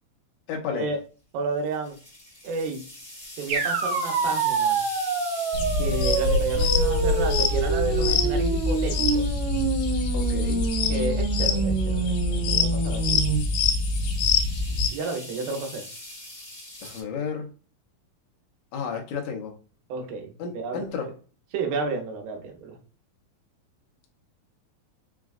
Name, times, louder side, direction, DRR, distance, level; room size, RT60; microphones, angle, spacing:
voice 1, 0.5-0.9 10.1-10.7 16.8-17.5 18.7-19.5 20.4-21.1, left 6 dB, 70° left, 2 dB, 1.8 m, -32 dB
voice 2, 1.3-2.0 2.4-2.8 3.4-4.8 5.8-9.4 10.9-13.2 14.9-15.9 19.9-20.8 21.5-22.8, right 4 dB, 80° right, 3 dB, 2.7 m, -31 dB
sound 1, 1.6-11.1 12.3-17.0, left 1 dB, 25° left, 0.9 m, -43 dB
sound 2, 3.5-13.4, right 4 dB, 60° right, 1.9 m, -27 dB
sound 3, 5.5-14.9, left 4 dB, 90° left, 2.6 m, -25 dB
5.9 x 2.3 x 2.4 m, 0.37 s
omnidirectional pair, 4.2 m